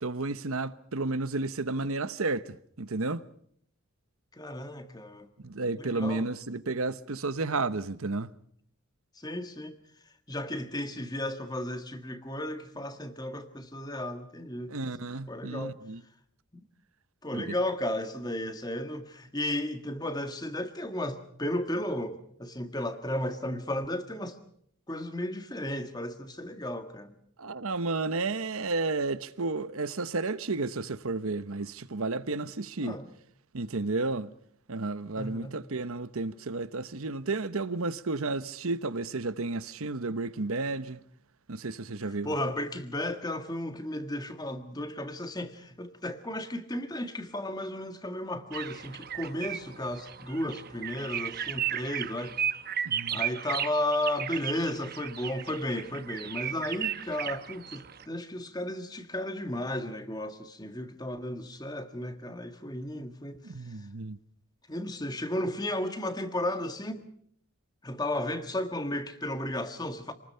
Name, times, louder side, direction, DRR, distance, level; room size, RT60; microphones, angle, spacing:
voice 1, 0.0-3.2 5.4-8.3 14.7-16.0 17.3-17.5 27.4-33.0 33.5-34.3 34.7-41.0 41.5-42.3 52.8-53.2 63.4-64.2, right 3 dB, 75° right, 1.0 m, -32 dB
voice 2, 4.3-5.3 5.8-6.3 9.2-9.8 10.3-15.0 15.3-15.8 16.5-16.7 17.2-24.4 24.9-27.1 32.8-33.1 35.2-35.6 42.0-52.4 53.1-63.9 64.7-67.1 67.8-70.1, left 1 dB, 20° left, 1.7 m, -34 dB
sound 1, 48.5-58.0, right 9 dB, 45° right, 1.0 m, -35 dB
28.0 x 20.0 x 5.7 m
head